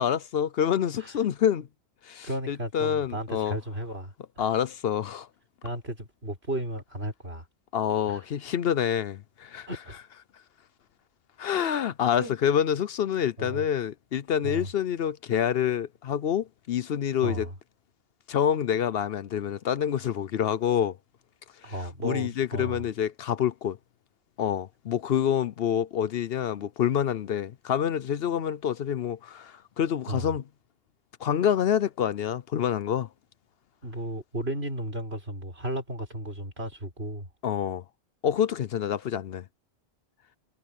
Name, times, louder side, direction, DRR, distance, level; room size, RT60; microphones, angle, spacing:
voice 1, 0.0-1.7 2.0-3.6 4.4-5.3 7.7-9.7 11.4-17.5 18.3-21.0 21.6-21.7 22.0-23.8 24.4-30.4 31.2-33.1 37.4-37.8 38.2-39.4, left 9 dB, 65° left, 0.8 m, -27 dB
voice 2, 2.2-4.4 5.6-7.5 8.1-8.2 9.7-10.0 12.2-12.4 13.4-13.6 14.4-14.7 17.2-17.5 21.6-22.8 30.1-30.3 33.8-37.3, right 1 dB, 70° right, 6.6 m, -34 dB
omnidirectional pair, 1.1 m